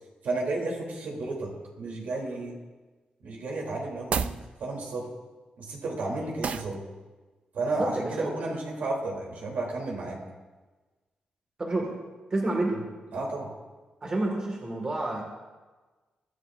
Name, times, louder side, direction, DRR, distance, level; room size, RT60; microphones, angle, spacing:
voice 1, 0.2-2.5 3.2-5.1 5.6-6.8 7.5-10.2 12.6-12.8 13.1-13.5, right 2 dB, 75° right, -1 dB, 3.4 m, -32 dB
sound 1, 4.0-4.4 6.4-6.8, right 6 dB, 50° right, 0.5 m, -29 dB
voice 2, 7.6-8.3 11.6-11.9 12.3-12.8 14.0-15.2, right 2 dB, 30° right, -1 dB, 2.0 m, -29 dB
22.5 x 11.0 x 2.6 m, 1.3 s
wide cardioid pair, 170°, 3 cm